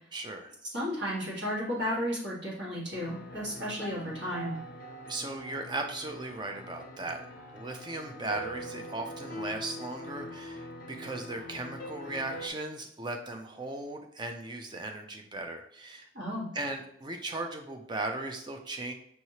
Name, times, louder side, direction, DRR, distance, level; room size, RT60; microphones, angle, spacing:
voice 1, 0.1-0.5 5.1-7.2 7.5-16.1 16.5-18.9, right 2 dB, 20° right, 4 dB, 0.4 m, -37 dB
voice 2, 0.7-4.6 16.1-16.5, equal, 65° right, -5 dB, 1.6 m, -33 dB
sound 1, 2.9-12.5, equal, 45° left, 0.5 m, -43 dB
5.5 x 3.0 x 2.8 m, 0.70 s
head